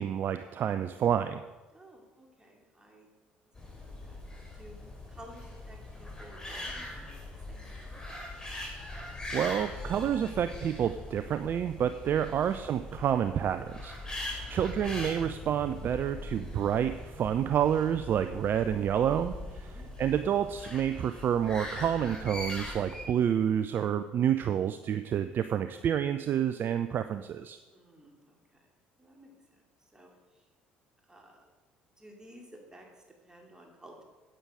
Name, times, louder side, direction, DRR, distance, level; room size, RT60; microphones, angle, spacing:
voice 1, 0.0-1.4 9.3-27.6, right 9 dB, 45° right, 10 dB, 0.4 m, -29 dB
voice 2, 1.7-3.1 3.6-4.2 4.5-4.8 5.1-7.2 7.5-8.0 14.0-14.5 19.3-19.9 27.7-28.7 29.0-29.6 29.9-30.4 31.1-31.5 32.0-34.0, equal, 15° right, 0 dB, 2.6 m, -54 dB
sound 1, 3.5-23.0, left 2 dB, 15° left, 3.6 m, -41 dB
9.0 x 8.8 x 5.0 m, 1.2 s
figure-of-eight pair, 55°, 5 cm